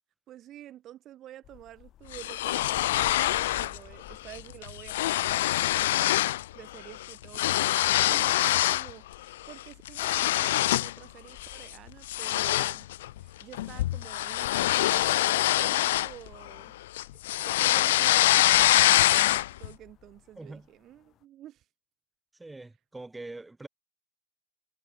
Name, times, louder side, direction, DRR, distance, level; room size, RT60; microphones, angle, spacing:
voice 1, 0.3-6.3 6.5-12.9 13.2-16.8 17.4-21.6, right 13 dB, 30° right, 4.0 m, -49 dB
sound 1, 1.4-21.2, left 12 dB, 30° left, 7.4 m, -55 dB
sound 2, 2.1-3.8 4.1-4.4 4.6-6.4 6.7-8.9 9.3-11.0 11.4-11.6 12.1-16.6 17.0-19.7, left 15 dB, 55° left, 0.8 m, -24 dB
voice 2, 20.3-20.7 22.4-23.7, right 2 dB, 5° right, 6.5 m, -43 dB
figure-of-eight pair, 90°, 0 cm